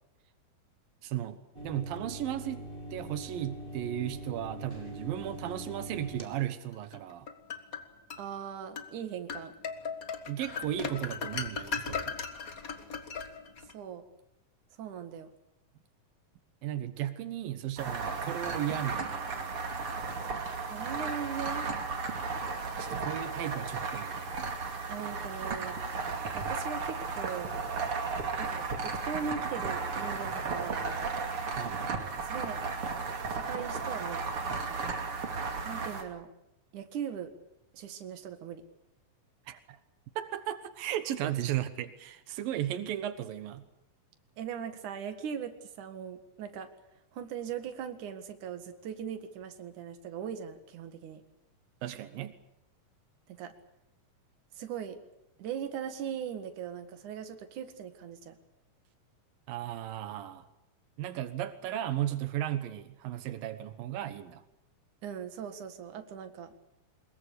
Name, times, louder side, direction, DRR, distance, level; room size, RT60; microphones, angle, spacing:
voice 1, 1.0-1.4 1.6-2.7 2.9-7.3 10.3-12.1 16.6-19.5 22.8-24.5 31.6-31.9 39.5-39.8 40.2-43.6 51.8-52.3 59.5-60.4 61.0-64.4, right 12 dB, 90° right, 11 dB, 3.0 m, -35 dB
sound 1, 1.5-6.2, right 1 dB, 15° right, 3.2 m, -43 dB
sound 2, 6.9-8.2 8.8-8.9 9.3-13.7, left 5 dB, 40° left, 1.3 m, -37 dB
voice 2, 8.2-9.5 13.7-14.0 14.8-15.3 20.6-21.7 24.9-25.8 26.3-27.5 28.4-30.9 32.2-32.7 33.3-34.8 35.6-36.3 36.7-37.3 37.7-38.6 44.4-46.7 47.1-51.2 53.4-53.5 54.5-55.0 55.4-58.4 65.0-66.5, right 8 dB, 65° right, 8 dB, 3.2 m, -39 dB
sound 3, 17.8-36.0, right 4 dB, 40° right, 3.2 m, -34 dB
23.0 x 21.5 x 8.5 m, 0.83 s
omnidirectional pair, 3.9 m